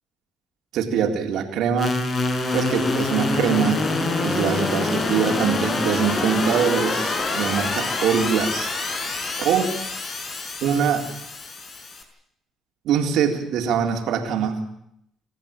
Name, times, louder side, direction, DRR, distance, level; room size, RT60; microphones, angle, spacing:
voice 1, 0.7-2.0 2.5-8.7 9.0-9.8 10.6-11.1 12.8-14.6, right 7 dB, 75° right, 3 dB, 4.0 m, -23 dB
sound 1, 1.8-12.0, left 3 dB, 45° left, 5.7 m, -26 dB
27.5 x 15.0 x 9.0 m, 0.76 s
cardioid pair, 80°, 0 cm